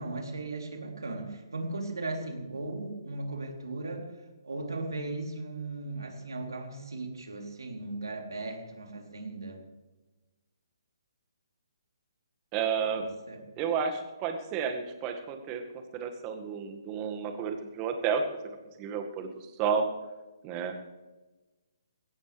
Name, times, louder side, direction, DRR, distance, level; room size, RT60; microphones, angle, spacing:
voice 1, 0.0-4.1 4.4-9.6 12.9-13.0 13.3-13.4, right 2 dB, 75° right, 2 dB, 3.5 m, -37 dB
voice 2, 12.5-13.1 13.6-15.6 15.9-19.9 20.4-20.7, right 6 dB, 25° right, 5 dB, 1.9 m, -31 dB
20.0 x 17.0 x 3.4 m, 1.2 s
figure-of-eight pair, 140°, 2 cm